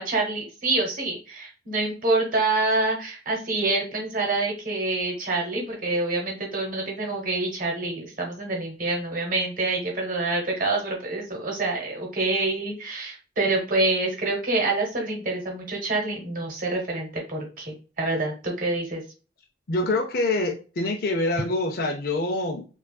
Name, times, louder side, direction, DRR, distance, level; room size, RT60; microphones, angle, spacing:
voice 1, 0.0-19.0, right 2 dB, 45° right, 0 dB, 1.0 m, -26 dB
voice 2, 19.7-22.7, left 2 dB, 55° left, 2 dB, 0.5 m, -25 dB
3.4 x 2.3 x 2.3 m, 0.36 s
head